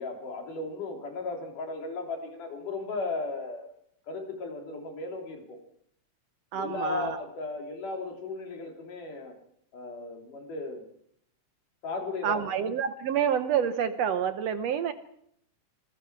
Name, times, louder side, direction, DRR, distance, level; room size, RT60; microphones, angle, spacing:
voice 1, 0.0-3.7 4.1-5.6 6.5-9.3 9.7-10.8 11.8-12.5, left 3 dB, 85° left, 2 dB, 4.8 m, -35 dB
voice 2, 6.5-7.2 12.2-14.9, right 8 dB, 65° right, 10 dB, 1.8 m, -28 dB
26.5 x 21.0 x 4.7 m, 0.70 s
omnidirectional pair, 3.6 m